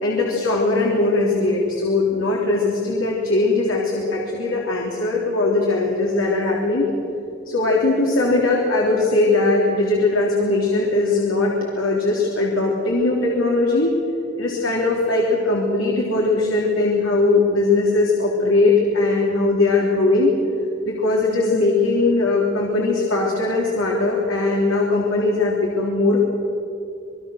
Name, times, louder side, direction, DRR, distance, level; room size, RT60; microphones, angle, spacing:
voice 1, 0.0-6.9 7.5-13.9 14.4-20.3 20.8-26.2, left 2 dB, 85° left, -2 dB, 3.4 m, -20 dB
27.0 x 22.0 x 6.6 m, 2.7 s
head